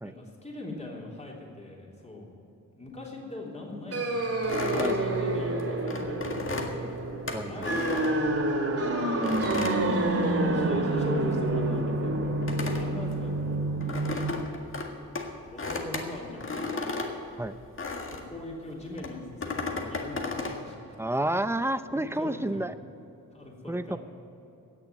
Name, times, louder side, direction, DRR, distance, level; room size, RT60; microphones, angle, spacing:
voice 1, 0.0-2.3 2.7-4.2 4.5-7.0 7.4-8.3 9.1-9.6 10.4-13.6 14.1-14.5 15.5-16.9 17.2-17.4 18.1-21.3 21.9-22.7 23.3-24.0, left 2 dB, 20° left, -2 dB, 3.4 m, -41 dB
sound 1, 3.9-14.4, right 2 dB, 45° right, 2.2 m, -28 dB
sound 2, 4.4-8.7 9.2-10.7 11.0-18.4 19.0-20.6, left 3 dB, 40° left, 1.9 m, -35 dB
voice 2, 7.3-7.7 17.4-17.5 21.0-22.7 23.6-24.0, right 1 dB, 10° right, 12 dB, 0.6 m, -30 dB
17.0 x 7.1 x 9.2 m, 3.0 s
cardioid pair, 80°, 33 cm